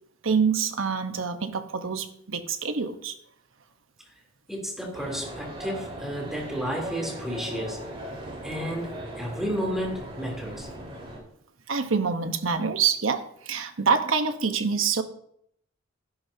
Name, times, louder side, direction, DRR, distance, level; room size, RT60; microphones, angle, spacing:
voice 1, 0.2-3.1 11.7-15.0, right 5 dB, 90° right, 7 dB, 1.1 m, -26 dB
voice 2, 4.5-7.8 8.4-10.7, equal, ahead, -2 dB, 3.3 m, -32 dB
sound 1, 4.9-11.2, right 1 dB, 30° right, 4.3 m, -38 dB
15.0 x 11.0 x 2.8 m, 0.70 s
head